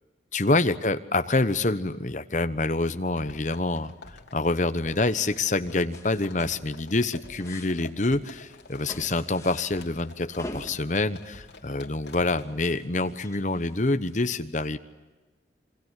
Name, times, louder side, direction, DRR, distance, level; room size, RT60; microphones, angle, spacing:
voice 1, 0.3-14.8, left 2 dB, 40° left, 11 dB, 1.1 m, -26 dB
sound 1, 3.1-12.4, left 3 dB, 80° left, 2.9 m, -48 dB
sound 2, 4.4-4.7 5.0-5.5 5.9-6.9 7.2-14.2, left 1 dB, 15° left, 2.3 m, -46 dB
27.5 x 23.5 x 8.2 m, 1.2 s
head